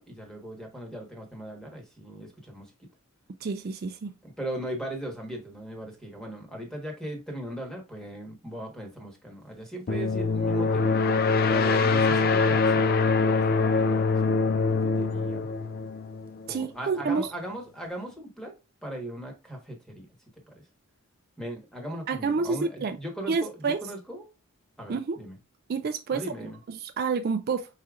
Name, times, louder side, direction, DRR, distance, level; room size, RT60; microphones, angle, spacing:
voice 1, 0.0-2.7 4.2-10.9 11.5-15.5 16.5-18.5 18.8-20.0 20.5-20.6 21.4-24.3 24.8-25.4 26.1-26.6, right 1 dB, 5° left, 1.2 m, -38 dB
voice 2, 3.4-4.1 16.5-17.3 22.1-23.0 23.3-23.8 24.9-25.2 25.7-26.2 26.7-27.7, right 5 dB, 45° right, 0.3 m, -28 dB
sound 1, 9.9-16.5, left 4 dB, 40° left, 0.4 m, -24 dB
4.9 x 4.2 x 2.4 m
head